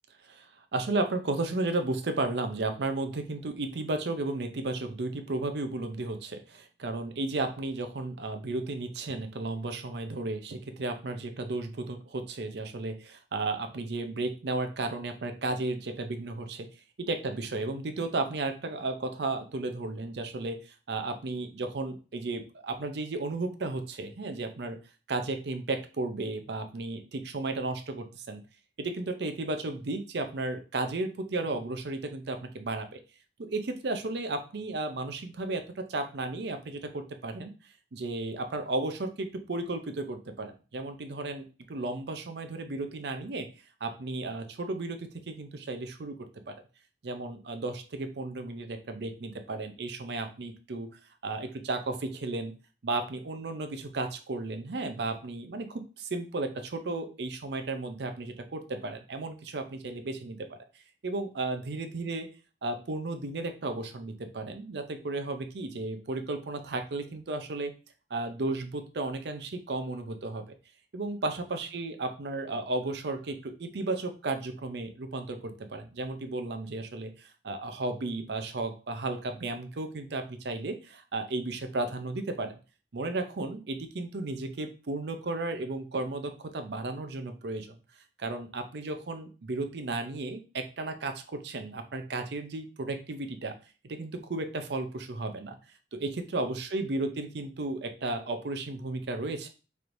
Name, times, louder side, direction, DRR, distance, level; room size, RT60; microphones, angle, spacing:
voice 1, 0.2-16.7 17.0-24.8 25.1-28.4 28.8-33.0 33.4-37.5 37.9-43.5 43.8-46.2 46.5-46.6 47.0-50.9 51.2-52.5 52.8-60.6 61.0-62.3 62.6-67.7 68.1-70.4 70.9-82.5 82.9-87.7 88.2-93.5 93.8-95.6 95.9-99.5, right 2 dB, 65° right, 7 dB, 0.5 m, -34 dB
4.4 x 3.3 x 2.6 m, 0.34 s
head